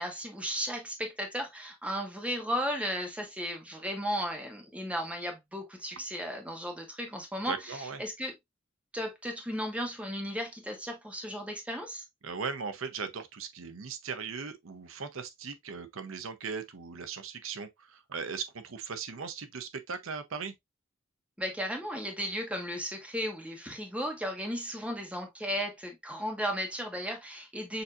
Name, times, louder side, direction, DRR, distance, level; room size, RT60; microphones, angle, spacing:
voice 1, 0.0-8.3 8.9-12.0 21.4-27.8, equal, 5° right, 1.1 m, -35 dB
voice 2, 7.5-8.0 12.2-20.5, right 5 dB, 80° right, 0.7 m, -38 dB
6.7 x 2.7 x 2.4 m
head